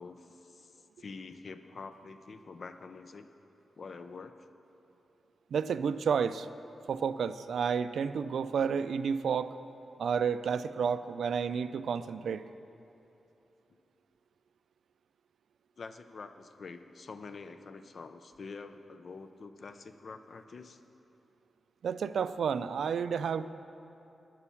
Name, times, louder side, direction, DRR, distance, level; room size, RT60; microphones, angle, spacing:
voice 1, 0.0-3.3 3.8-4.5 13.7-13.8 15.8-20.8, left 4 dB, 50° left, 9 dB, 0.6 m, -46 dB
voice 2, 5.5-6.5 6.9-9.5 10.0-12.4 21.8-23.5, right 6 dB, 85° right, 13 dB, 0.4 m, -31 dB
11.5 x 9.7 x 7.1 m, 3.0 s
wide cardioid pair, 135°, 0 cm